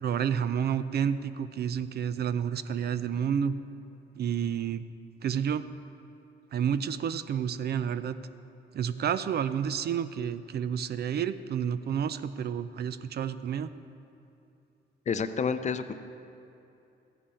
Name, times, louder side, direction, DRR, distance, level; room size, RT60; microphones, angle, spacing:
voice 1, 0.0-3.5 4.2-4.9 5.2-5.7 6.5-8.2 8.7-13.7, right 8 dB, 55° right, 13 dB, 0.5 m, -30 dB
voice 2, 15.1-15.9, left 5 dB, 35° left, 10 dB, 0.6 m, -29 dB
14.5 x 10.0 x 4.3 m, 2.8 s
cardioid pair, 90°, 20 cm